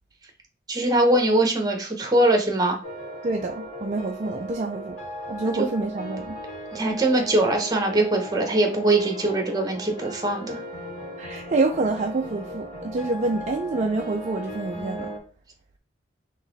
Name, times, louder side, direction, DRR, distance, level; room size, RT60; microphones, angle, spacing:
voice 1, 0.7-2.8 5.4-5.7 6.7-10.6, right 1 dB, 20° right, 1.0 m, -22 dB
sound 1, 2.8-15.2, right 1 dB, 85° left, 1.6 m, -37 dB
voice 2, 3.2-5.0 5.3-6.4 11.2-15.1, right 3 dB, 35° right, 0.4 m, -27 dB
4.0 x 3.0 x 4.0 m
head